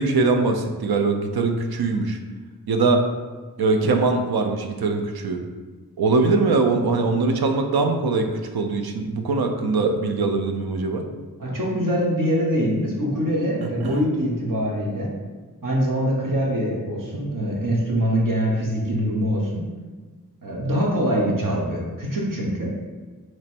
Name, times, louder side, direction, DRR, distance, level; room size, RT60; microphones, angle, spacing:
voice 1, 0.0-2.2 2.7-3.1 3.6-5.4 6.0-8.3 8.5-11.0 13.8-14.0, right 3 dB, 90° right, 5 dB, 0.5 m, -22 dB
voice 2, 11.4-15.1 15.6-19.6 20.4-22.7, equal, 60° right, -4 dB, 1.1 m, -23 dB
3.1 x 3.0 x 4.3 m, 1.4 s
wide cardioid pair, 50°, 36 cm